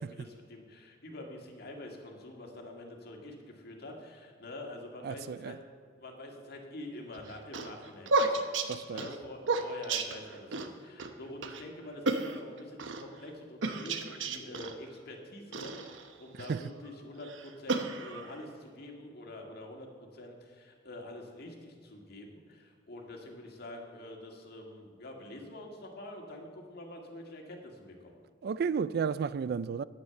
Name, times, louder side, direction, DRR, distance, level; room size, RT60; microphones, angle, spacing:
voice 1, 0.0-5.6 6.0-28.2, left 1 dB, 55° left, 1.9 m, -46 dB
voice 2, 5.0-5.5 8.7-9.1 16.5-16.6 28.4-29.8, right 6 dB, 55° right, 0.3 m, -32 dB
sound 1, 7.1-10.7 11.0-11.1 11.4-11.6 12.1-13.0 13.6-14.8 15.5-16.6 17.2-18.4, right 3 dB, 90° right, 0.9 m, -32 dB
9.7 x 9.7 x 6.9 m
head